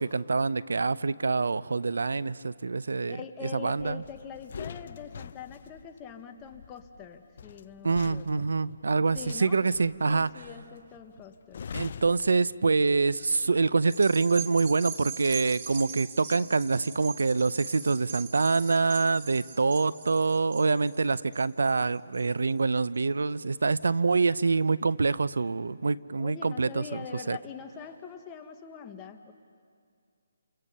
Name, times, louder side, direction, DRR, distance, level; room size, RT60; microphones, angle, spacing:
voice 1, 0.0-4.0 7.8-10.5 11.7-27.4, right 4 dB, 85° right, 18 dB, 0.6 m, -26 dB
voice 2, 3.1-8.5 9.1-9.6 10.0-11.7 26.2-29.3, left 7 dB, 15° left, 5 dB, 1.2 m, -43 dB
sound 1, 3.8-13.1 13.4-13.7, left 7 dB, 50° left, 0.5 m, -45 dB
sound 2, 13.9-22.5 23.0-23.1, right 7 dB, 35° right, 2.9 m, -41 dB
29.5 x 28.5 x 5.5 m, 2.2 s
hypercardioid pair, 165°, 0 cm